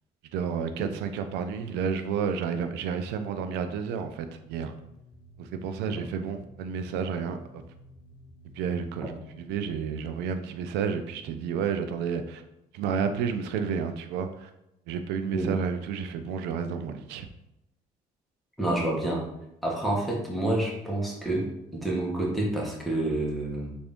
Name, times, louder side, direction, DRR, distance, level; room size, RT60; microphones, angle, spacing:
voice 1, 0.3-4.7 5.4-7.6 8.6-12.4 12.7-14.5 14.9-17.3, right 6 dB, 90° right, 8 dB, 0.4 m, -31 dB
sound 1, 4.5-9.8, left 1 dB, 25° left, 0.7 m, -53 dB
voice 2, 18.6-19.2 19.6-23.7, right 1 dB, ahead, -3 dB, 1.0 m, -28 dB
3.5 x 2.6 x 3.5 m, 0.86 s
cardioid pair, 110°, 17 cm